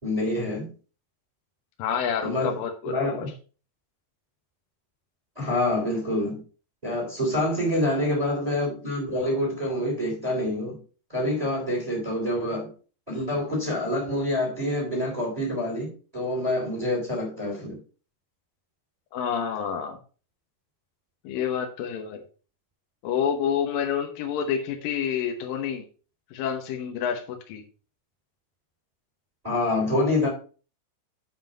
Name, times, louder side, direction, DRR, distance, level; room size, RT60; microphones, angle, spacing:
voice 1, 0.0-0.7 2.2-2.6 2.8-3.3 5.4-6.4 6.8-10.8 11.1-12.7 13.1-17.8 29.4-30.3, left 1 dB, 10° right, 2.7 m, -26 dB
voice 2, 1.8-3.3 19.1-20.0 21.2-22.2 23.0-25.8 26.3-27.6, left 8 dB, 70° left, 2.3 m, -28 dB
7.3 x 5.8 x 5.3 m
omnidirectional pair, 5.0 m